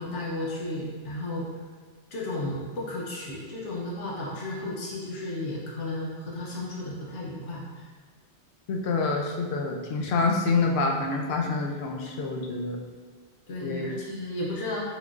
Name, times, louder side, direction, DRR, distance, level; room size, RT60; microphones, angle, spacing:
voice 1, 0.0-1.5 2.1-7.9 9.1-9.2 13.5-14.8, left 1 dB, 85° left, -4 dB, 1.1 m, -33 dB
voice 2, 8.7-12.8 13.6-13.9, left 3 dB, 65° left, 1 dB, 0.8 m, -27 dB
5.7 x 3.1 x 2.4 m, 1.5 s
omnidirectional pair, 1.2 m